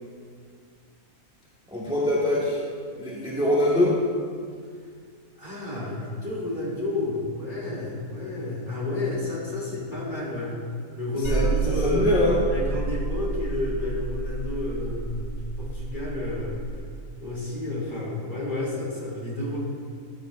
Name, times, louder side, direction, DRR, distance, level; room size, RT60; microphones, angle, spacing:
voice 1, 1.7-2.6 3.0-4.0 11.3-12.4, left 1 dB, 5° right, -7 dB, 1.7 m, -23 dB
voice 2, 5.4-10.5 10.9-12.2 12.5-16.6 17.2-19.6, left 2 dB, 35° left, -6 dB, 3.2 m, -31 dB
sound 1, 11.2-16.8, right 3 dB, 75° right, 3.3 m, -30 dB
15.5 x 11.0 x 2.6 m, 2.1 s
omnidirectional pair, 1.5 m